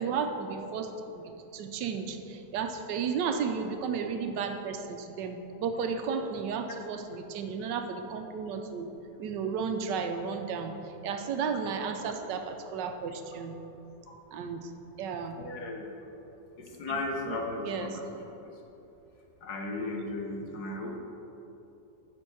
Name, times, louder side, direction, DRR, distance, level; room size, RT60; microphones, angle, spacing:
voice 1, 0.0-8.9 9.2-13.6 14.3-14.7 15.0-15.4 16.9-18.0, right 6 dB, 90° right, 6 dB, 1.3 m, -33 dB
voice 2, 15.4-15.9 16.6-18.0 18.4-18.5 19.4-21.0, left 2 dB, 65° left, 0 dB, 1.6 m, -35 dB
9.8 x 4.5 x 6.2 m, 2.9 s
omnidirectional pair, 1.9 m